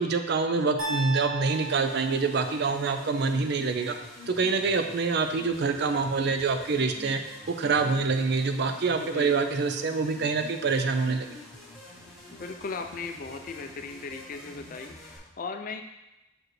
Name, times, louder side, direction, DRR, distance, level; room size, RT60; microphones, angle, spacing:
voice 1, 0.0-3.9 4.3-7.2 7.5-11.3, right 4 dB, 55° right, 7 dB, 0.4 m, -26 dB
sound 1, 0.8-2.9, right 2 dB, 70° right, 1.9 m, -35 dB
sound 2, 1.5-15.2, left 1 dB, ahead, 1.2 m, -47 dB
voice 2, 9.0-9.4 12.3-15.8, left 4 dB, 40° left, 6 dB, 0.4 m, -37 dB
6.2 x 4.9 x 3.1 m, 0.98 s
head